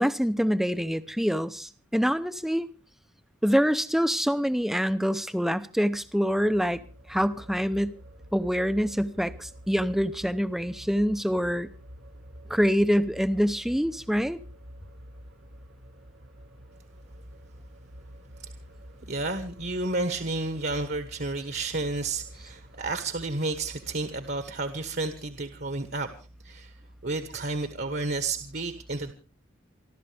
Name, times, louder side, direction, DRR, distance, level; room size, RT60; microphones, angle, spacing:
voice 1, 0.0-2.7 3.4-6.8 7.1-7.9 8.3-11.7 12.5-14.4, equal, ahead, 12 dB, 0.7 m, -25 dB
sound 1, 5.9-24.3, equal, 75° right, 1.8 m, -48 dB
voice 2, 19.1-26.1 26.4-26.7 27.0-29.1, right 3 dB, 50° right, 9 dB, 1.4 m, -31 dB
29.0 x 12.5 x 3.4 m, 0.35 s
head